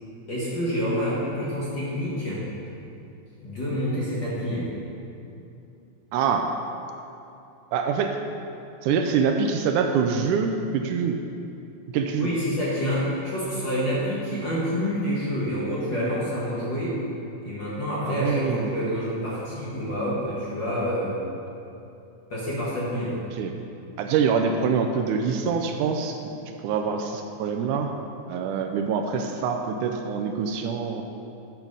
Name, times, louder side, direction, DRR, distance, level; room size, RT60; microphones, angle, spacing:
voice 1, 0.3-2.4 3.4-4.7 12.2-17.0 17.4-21.1 22.3-23.2, equal, 45° left, -8 dB, 1.6 m, -27 dB
voice 2, 6.1-6.5 7.7-8.2 8.8-11.2 11.9-12.3 18.1-18.7 23.3-23.5 24.0-26.3 26.6-27.9 28.3-31.0, right 6 dB, 80° right, 4 dB, 2.0 m, -25 dB
8.9 x 6.1 x 5.4 m, 2.7 s
omnidirectional pair, 3.7 m